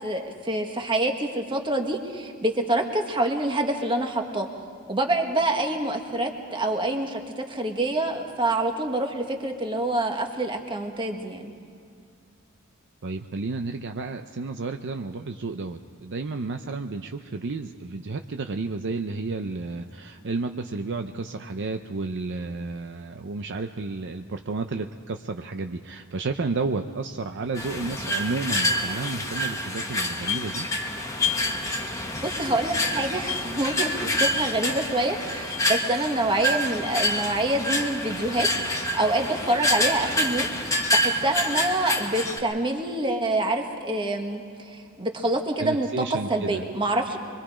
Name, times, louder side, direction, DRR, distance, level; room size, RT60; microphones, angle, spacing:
voice 1, 0.0-4.5 4.9-11.5 31.9-46.0 46.3-47.2, right 1 dB, 25° right, 3 dB, 1.6 m, -26 dB
voice 2, 13.0-30.7 45.6-46.6, right 3 dB, 55° right, 6 dB, 0.6 m, -31 dB
sound 1, 27.5-42.4, left 1 dB, 15° left, 1.4 m, -27 dB
24.5 x 23.0 x 5.0 m, 2.3 s
head